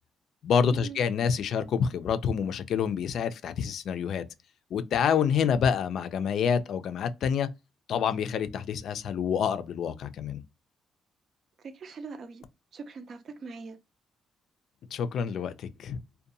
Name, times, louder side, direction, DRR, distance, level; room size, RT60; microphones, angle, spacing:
voice 1, 0.4-4.3 4.7-7.5 7.9-10.4 14.9-16.0, left 7 dB, 70° left, 0.3 m, -27 dB
voice 2, 11.6-12.4 12.7-13.8, right 4 dB, 55° right, 0.5 m, -42 dB
2.6 x 2.2 x 2.6 m
cardioid pair, 90°, 0 cm